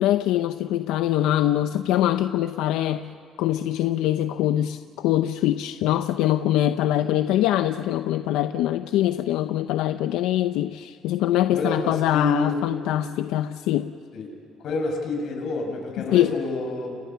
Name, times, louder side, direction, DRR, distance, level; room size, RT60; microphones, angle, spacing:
voice 1, 0.0-3.1 3.4-13.9 16.1-16.4, left 13 dB, 85° left, 0.7 m, -23 dB
voice 2, 11.5-12.6 14.1-14.3 14.6-17.0, left 3 dB, 55° left, 6.9 m, -28 dB
30.0 x 29.5 x 5.8 m
cardioid pair, 145°, 0 cm